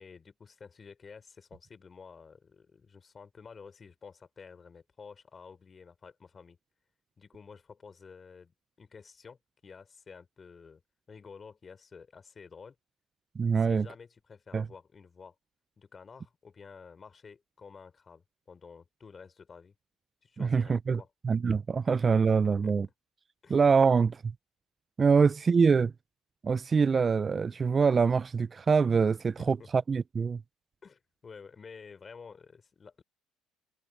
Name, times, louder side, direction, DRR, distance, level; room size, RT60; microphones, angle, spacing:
voice 1, 0.0-6.6 7.2-10.8 11.1-12.8 13.6-15.3 15.8-19.7 20.2-21.1 22.3-22.7 23.4-23.6 29.4-29.7 30.8-33.0, left 5 dB, 35° left, 4.1 m, -51 dB
voice 2, 13.4-13.9 14.5-14.7 20.4-22.9 23.5-24.2 25.0-25.9 26.4-30.4, right 5 dB, 35° right, 0.5 m, -24 dB
supercardioid pair, 70°, 0 cm